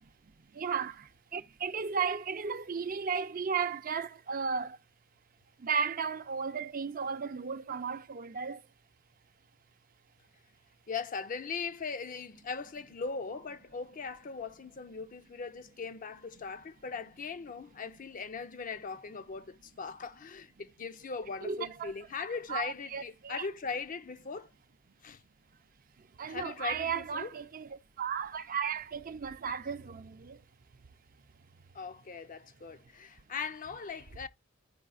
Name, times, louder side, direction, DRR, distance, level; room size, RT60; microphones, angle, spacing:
voice 1, 0.6-1.0 1.3-4.8 5.6-8.6 21.4-21.9 22.5-23.5 26.2-30.4, right 6 dB, 45° right, 0.5 m, -34 dB
voice 2, 10.9-24.5 25.0-25.2 26.3-27.3 31.7-34.3, left 5 dB, 45° left, 0.5 m, -39 dB
14.0 x 4.8 x 2.4 m
head